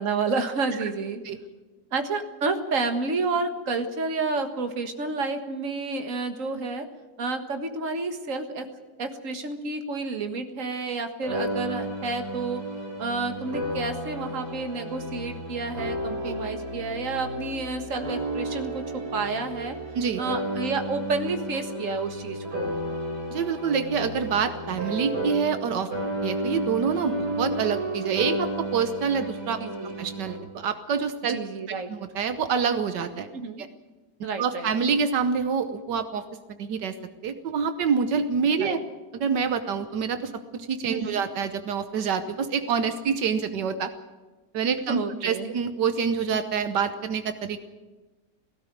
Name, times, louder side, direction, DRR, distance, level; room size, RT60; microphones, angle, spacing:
voice 1, 0.0-1.2 1.9-6.9 7.2-8.7 9.0-12.6 13.0-18.8 19.1-19.8 20.2-22.7 29.6-29.9 31.3-31.9 33.3-33.6 34.2-34.7 38.5-38.8 40.9-41.2 44.8-45.5, right 3 dB, 50° right, 7 dB, 1.9 m, -30 dB
sound 1, 11.2-25.7 25.9-30.4, right 1 dB, 65° right, 4.7 m, -32 dB
voice 2, 23.3-25.9 26.2-29.6 30.0-31.4 31.9-33.3 33.6-33.7 34.4-36.2 36.5-36.9 37.2-38.8 39.1-43.9 44.5-47.6, right 6 dB, 80° right, 9 dB, 1.6 m, -26 dB
18.0 x 16.5 x 9.3 m, 1.2 s
omnidirectional pair, 1.8 m